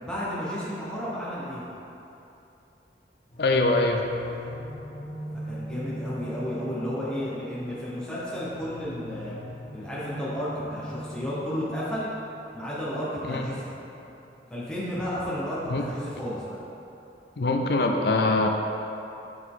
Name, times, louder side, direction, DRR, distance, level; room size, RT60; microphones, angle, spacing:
voice 1, 0.0-1.6 5.4-9.4 9.7-12.1 12.5-13.6 14.5-16.4, equal, 5° left, -9 dB, 1.1 m, -32 dB
sound 1, 3.3-16.1, equal, 40° left, 1.3 m, -41 dB
voice 2, 3.4-4.0 13.3-13.5 15.7-15.9 17.4-18.5, left 2 dB, 60° left, 3 dB, 0.5 m, -23 dB
8.2 x 4.6 x 3.8 m, 2.9 s
head